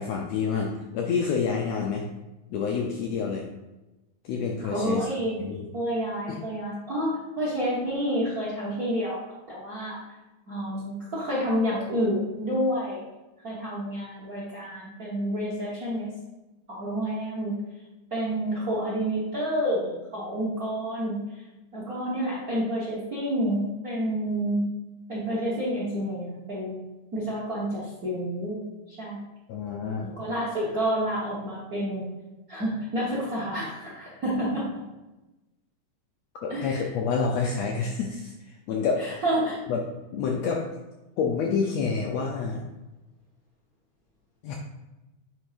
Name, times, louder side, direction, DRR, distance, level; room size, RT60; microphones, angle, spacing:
voice 1, 0.0-2.1 2.5-3.5 4.2-5.1 5.4-5.7 6.3-6.4 29.5-30.1 36.4-39.2 39.7-39.8 40.1-40.7 41.2-42.7 44.4-44.5, left 5 dB, 80° left, 1 dB, 1.5 m, -28 dB
voice 2, 4.7-5.4 5.7-9.2 9.5-10.0 10.5-13.0 13.4-16.1 16.7-17.5 18.1-21.2 21.7-24.6 25.1-26.8 27.1-28.6 28.9-29.2 30.0-32.1 32.5-34.6 36.5-36.8 39.0-39.6, equal, 50° right, -6 dB, 1.0 m, -29 dB
7.9 x 3.5 x 5.0 m, 1.1 s
omnidirectional pair, 3.7 m